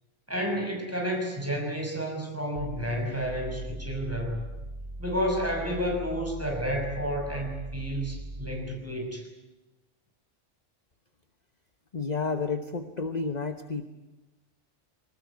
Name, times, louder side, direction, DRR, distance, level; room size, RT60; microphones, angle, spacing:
voice 1, 0.3-4.4 5.0-9.3, equal, 10° right, 1 dB, 6.1 m, -31 dB
sound 1, 2.6-8.7, right 1 dB, 55° right, 4.8 m, -40 dB
voice 2, 11.9-13.9, left 4 dB, 35° left, 8 dB, 1.2 m, -31 dB
24.5 x 19.5 x 9.6 m, 1.1 s
omnidirectional pair, 1.3 m